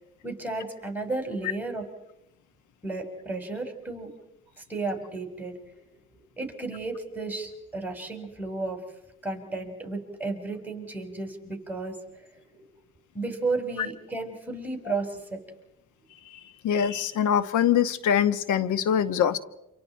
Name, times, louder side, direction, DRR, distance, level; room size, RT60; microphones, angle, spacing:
voice 1, 0.2-1.9 2.8-4.1 4.6-5.8 6.4-8.8 9.2-12.7 13.1-15.4, right 3 dB, 5° right, 4 dB, 5.1 m, -33 dB
voice 2, 16.6-19.4, left 8 dB, 75° left, 13 dB, 1.2 m, -23 dB
28.5 x 27.0 x 4.5 m, 0.85 s
cardioid pair, 90°, 30 cm